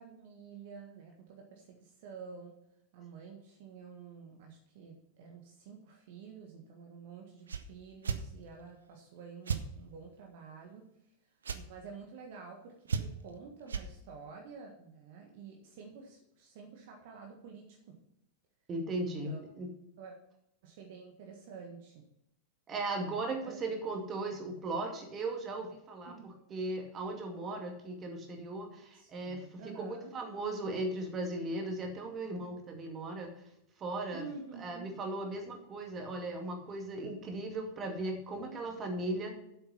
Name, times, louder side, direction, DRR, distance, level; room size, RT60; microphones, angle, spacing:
voice 1, 0.0-2.5 2.9-10.9 11.5-17.9 19.0-19.4 20.0-20.1 20.6-22.0 23.4-23.5 26.1-26.4 28.9-30.1 34.1-34.9, right 5 dB, 50° right, 1 dB, 1.6 m, -49 dB
sound 1, 7.5-7.6 8.0-8.2 9.5-9.6 11.4-11.6 12.9-13.3 13.7-13.9, right 6 dB, 70° right, 0.8 m, -33 dB
voice 2, 18.7-19.7 22.7-33.3 33.8-34.3 34.6-39.3, right 2 dB, 25° right, 3 dB, 2.3 m, -37 dB
9.0 x 8.0 x 5.6 m, 0.78 s
figure-of-eight pair, 90°, 0 cm